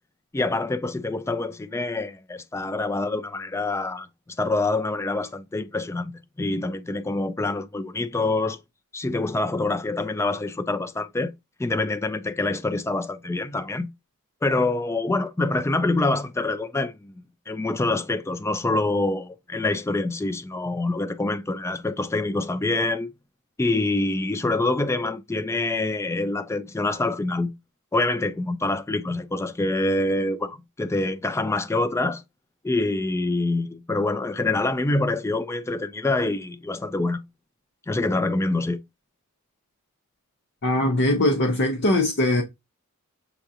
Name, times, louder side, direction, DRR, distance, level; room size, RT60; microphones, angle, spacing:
voice 1, 0.3-4.1 4.4-8.6 8.9-11.3 11.6-13.9 14.4-23.1 23.6-27.5 27.9-32.2 32.6-37.2 37.9-38.8, left 2 dB, 10° left, 0.3 m, -26 dB
voice 2, 40.6-42.4, left 1 dB, 50° left, 0.7 m, -21 dB
6.9 x 2.4 x 2.7 m
head